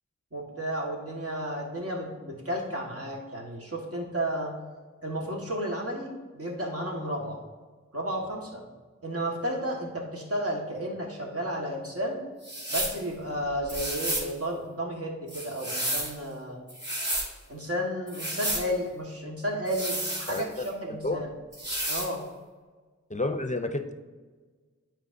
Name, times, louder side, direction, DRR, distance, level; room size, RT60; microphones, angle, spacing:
voice 1, 0.3-4.5 5.0-7.4 7.9-8.6 9.0-12.2 12.7-16.6 17.5-21.3 21.9-22.2, equal, 50° right, -2 dB, 1.6 m, -32 dB
sound 1, 12.4-13.0 13.7-14.3 15.3-16.2 16.7-17.3 18.1-18.7 19.7-20.7 21.5-22.1, right 1 dB, 35° right, 1.7 m, -31 dB
voice 2, 20.3-21.2 23.1-23.9, left 2 dB, 25° left, 8 dB, 0.6 m, -31 dB
8.7 x 4.5 x 2.7 m, 1.4 s
wide cardioid pair, 45°, 30 cm